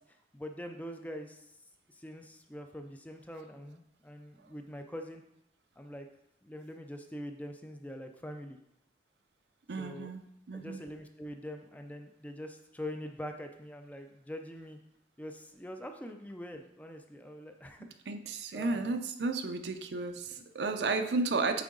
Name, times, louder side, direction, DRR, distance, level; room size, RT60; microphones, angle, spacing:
voice 1, 0.0-1.6 1.9-5.2 5.8-6.1 6.4-8.6 9.8-10.1 10.5-14.8 15.2-17.9 18.5-19.0 20.8-20.9, equal, 10° left, 5 dB, 0.4 m, -44 dB
voice 2, 9.7-10.2 10.5-10.8 18.1-21.6, right 3 dB, 75° right, 7 dB, 0.5 m, -33 dB
8.3 x 3.7 x 3.8 m, 0.79 s
head